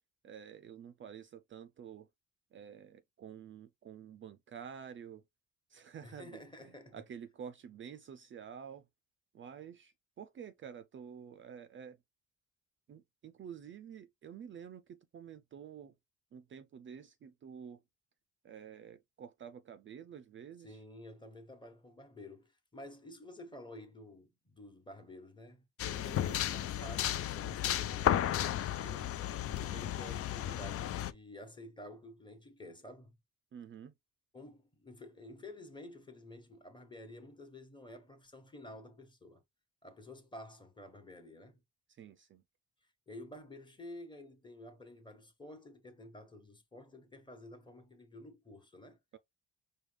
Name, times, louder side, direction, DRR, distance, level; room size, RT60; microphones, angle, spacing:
voice 1, 0.2-2.1 2.5-5.2 5.7-8.9 9.3-12.0 12.9-16.0 16.3-17.8 18.4-20.8 26.2-26.4 33.5-33.9 41.9-42.4 49.1-49.2, right 8 dB, 40° right, 0.4 m, -49 dB
voice 2, 6.0-7.0 20.6-29.1 29.6-33.2 34.3-39.4 39.8-41.6 43.1-49.0, left 1 dB, 15° left, 1.2 m, -51 dB
sound 1, 25.8-31.1, left 11 dB, 50° left, 0.4 m, -34 dB
4.8 x 2.3 x 3.2 m
cardioid pair, 90°, 30 cm